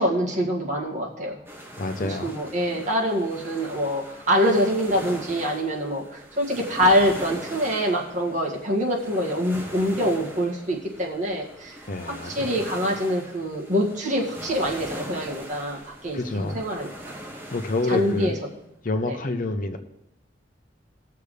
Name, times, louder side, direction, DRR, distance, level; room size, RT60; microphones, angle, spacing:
voice 1, 0.0-1.4 2.0-11.8 12.0-17.1 17.9-18.3 19.1-19.2, equal, 45° right, -2 dB, 2.2 m, -25 dB
sound 1, 1.4-18.4, equal, 15° right, 2.0 m, -41 dB
voice 2, 1.8-2.4 11.9-12.5 16.1-16.6 17.5-18.4 18.8-19.8, left 2 dB, 50° left, 7 dB, 0.8 m, -27 dB
19.0 x 6.7 x 3.4 m, 0.85 s
head